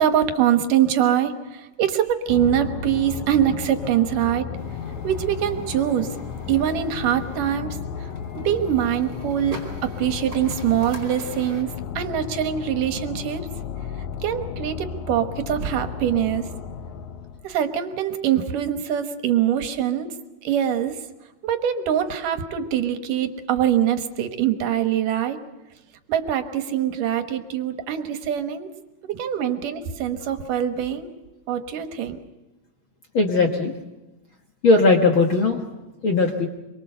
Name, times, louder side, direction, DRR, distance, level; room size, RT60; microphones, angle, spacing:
voice 1, 0.0-4.5 5.0-6.1 6.5-8.1 8.3-13.5 14.2-16.5 17.4-20.1 20.4-21.0 21.4-25.4 26.1-28.7 29.0-31.1 31.5-32.2, right 10 dB, 75° right, 8 dB, 2.7 m, -23 dB
sound 1, 2.3-17.4, left 7 dB, 70° left, 2.1 m, -34 dB
sound 2, 4.5-11.6, right 2 dB, 35° right, 5.3 m, -45 dB
voice 2, 33.1-33.7 34.6-35.6 36.0-36.5, left 3 dB, 45° left, 2 dB, 1.8 m, -18 dB
25.0 x 23.0 x 6.8 m, 1.0 s
omnidirectional pair, 3.9 m